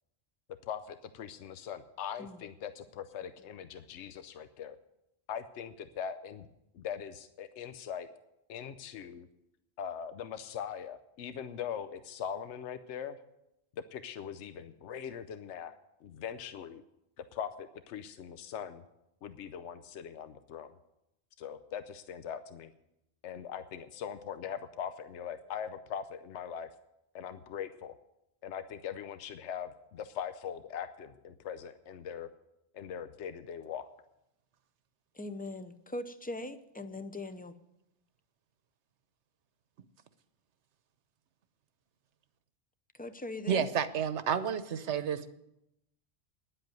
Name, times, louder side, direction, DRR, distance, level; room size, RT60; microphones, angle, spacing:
voice 1, 0.7-4.8 5.3-6.5 6.7-8.1 8.5-9.3 9.8-13.2 13.9-16.8 17.2-18.8 19.2-20.7 21.4-22.7 23.2-26.7 27.1-28.0 28.4-32.3 32.7-33.9, left 8 dB, 80° left, 10 dB, 1.0 m, -41 dB
voice 2, 35.1-37.5 42.9-43.6, left 2 dB, 10° left, 11 dB, 0.4 m, -40 dB
voice 3, 43.5-45.3, right 7 dB, 80° right, 12 dB, 1.1 m, -30 dB
10.5 x 7.9 x 9.2 m, 0.86 s
omnidirectional pair, 1.2 m